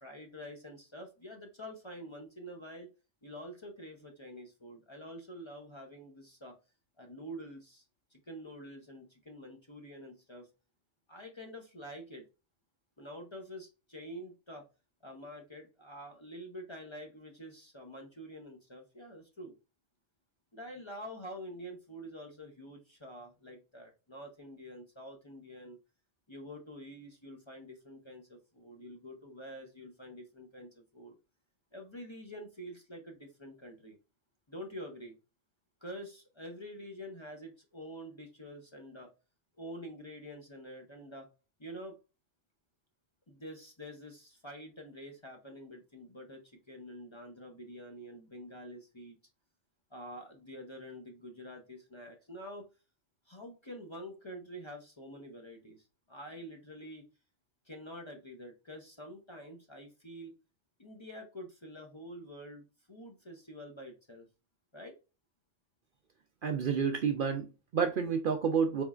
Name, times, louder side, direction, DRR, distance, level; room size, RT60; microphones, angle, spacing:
voice 1, 0.0-2.9 3.2-6.5 7.0-7.8 8.1-10.5 11.1-12.2 13.0-14.6 15.0-19.5 20.5-25.8 26.3-31.2 31.7-34.0 34.5-35.2 35.8-39.1 39.6-41.3 41.6-42.0 43.3-46.4 46.7-49.2 49.9-52.6 53.3-57.0 57.6-60.3 60.8-64.3 64.7-65.0, equal, 30° left, 0.7 m, -47 dB
voice 2, 66.4-68.8, right 6 dB, 60° right, 0.6 m, -30 dB
4.1 x 3.6 x 2.3 m
omnidirectional pair, 1.2 m